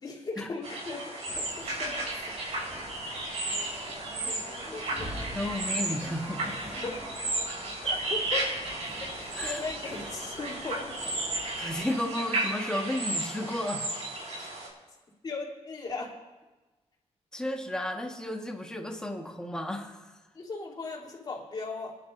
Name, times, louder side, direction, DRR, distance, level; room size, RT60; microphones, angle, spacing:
voice 1, 0.0-2.4 3.0-3.3 4.2-5.1 6.8-6.9 7.8-8.5 9.4-11.0 12.2-12.3 14.3-14.5 15.2-16.1 20.3-22.0, left 3 dB, 40° left, -4 dB, 3.4 m, -38 dB
sound 1, 0.6-14.7, right 2 dB, 75° right, 5.7 m, -34 dB
sound 2, 1.3-11.9, left 1 dB, 15° right, 4.9 m, -46 dB
voice 2, 5.3-6.9 9.3-9.6 11.6-13.9 17.3-20.1, left 1 dB, 5° left, 1 dB, 1.6 m, -33 dB
29.0 x 11.0 x 2.7 m, 1.2 s
wide cardioid pair, 145°, 11 cm